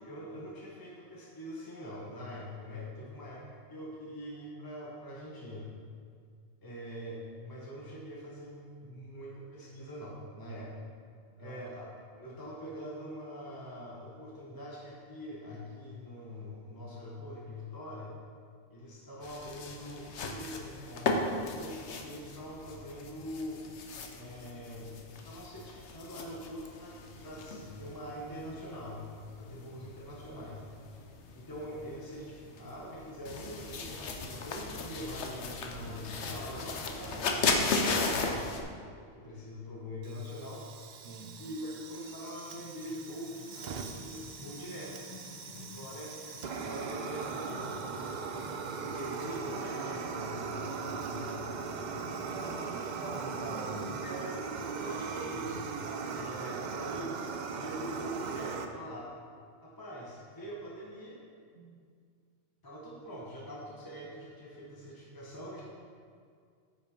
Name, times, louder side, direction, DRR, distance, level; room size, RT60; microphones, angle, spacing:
voice 1, 0.0-5.7 6.6-10.7 11.4-18.1 18.7-23.6 24.1-25.0 25.2-29.1 29.3-30.6 31.3-38.2 38.5-40.6 41.4-45.0 45.5-46.2 46.4-47.9 48.7-51.5 51.9-52.9 54.0-55.7 56.1-59.1 59.6-61.2 62.6-65.6, equal, 20° left, -5 dB, 1.1 m, -44 dB
sound 1, 19.2-38.6, left 3 dB, 70° left, 1.1 m, -36 dB
Fire, 40.0-58.6, right 5 dB, 55° right, 0.5 m, -39 dB
voice 2, 41.0-41.4 52.2-53.9 61.5-61.8, right 2 dB, 85° right, -5 dB, 1.5 m, -44 dB
Music / Water tap faucet / Trickle dribble, 42.5-54.3, left 4 dB, 50° left, 0.4 m, -52 dB
8.6 x 5.8 x 5.1 m, 2.2 s
omnidirectional pair, 1.3 m